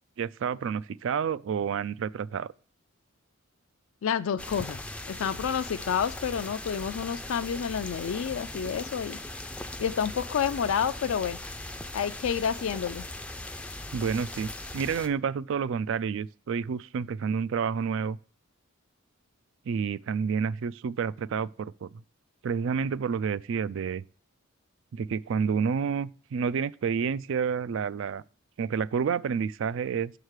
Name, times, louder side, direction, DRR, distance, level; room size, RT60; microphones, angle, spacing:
voice 1, 0.2-2.5 13.9-18.2 19.7-22.0 22.4-24.0 24.9-28.2 28.6-30.1, right 6 dB, 60° right, 0.3 m, -29 dB
voice 2, 4.0-4.8 5.1-9.2 9.8-11.4 11.9-13.0, left 7 dB, 70° left, 0.4 m, -29 dB
sound 1, 4.4-15.1, left 2 dB, 5° left, 0.4 m, -39 dB
6.5 x 4.8 x 6.4 m
head